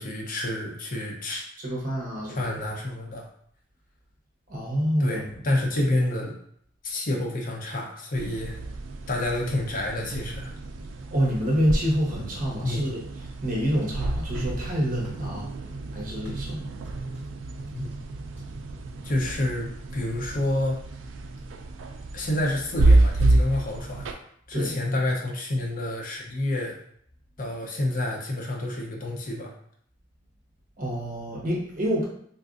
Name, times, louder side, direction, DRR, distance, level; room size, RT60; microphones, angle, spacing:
voice 1, 0.0-1.4 2.3-3.3 5.0-6.3 6.8-8.6 9.1-10.5 12.6-12.8 17.7-17.9 19.0-20.8 22.1-24.2 24.5-26.7 27.4-29.5, left 1 dB, 45° left, -1 dB, 0.6 m, -28 dB
voice 2, 1.6-2.6 4.5-5.4 11.1-13.0 13.4-16.8 17.6-17.7 24.5-24.7 30.8-32.0, equal, 45° right, -3 dB, 0.9 m, -27 dB
sound 1, 8.1-24.1, right 2 dB, 75° right, 0.4 m, -28 dB
sound 2, 11.5-12.1 12.4-13.4 13.8-14.5 15.0-15.2 16.2-18.0 18.4-18.5, left 1 dB, 5° right, 1.2 m, -44 dB
3.8 x 2.4 x 2.5 m, 0.65 s
head